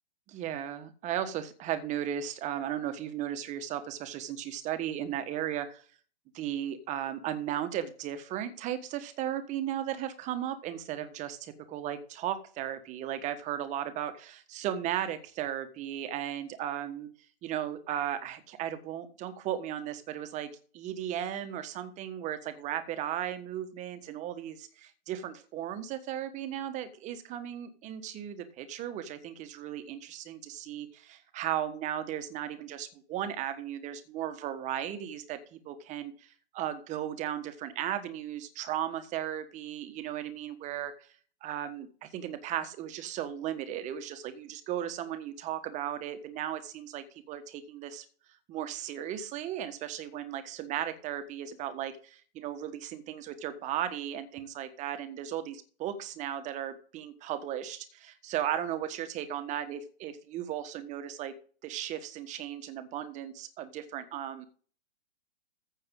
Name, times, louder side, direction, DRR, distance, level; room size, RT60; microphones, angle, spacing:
voice 1, 0.3-5.8 6.3-17.1 17.4-41.1 41.4-48.0 48.5-61.3 61.6-64.5, right 11 dB, 20° right, 10 dB, 1.3 m, -36 dB
14.5 x 6.7 x 3.8 m, 0.40 s
hypercardioid pair, 140°, 35 cm